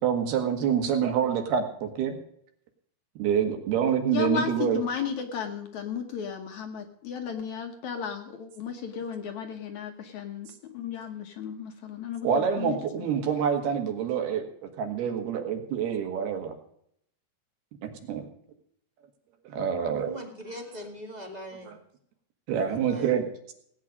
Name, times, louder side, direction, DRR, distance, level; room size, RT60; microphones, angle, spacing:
voice 1, 0.0-2.2 3.2-4.8 12.2-14.4 14.8-16.5 17.8-18.3 19.5-20.2 21.7-21.8 22.5-23.5, right 8 dB, 75° right, 5 dB, 3.8 m, -27 dB
voice 2, 4.1-13.1, left 7 dB, 65° left, 6 dB, 2.0 m, -34 dB
voice 3, 20.0-21.7 22.7-23.1, equal, 20° right, 2 dB, 1.1 m, -41 dB
18.0 x 9.0 x 5.3 m, 0.69 s
omnidirectional pair, 4.6 m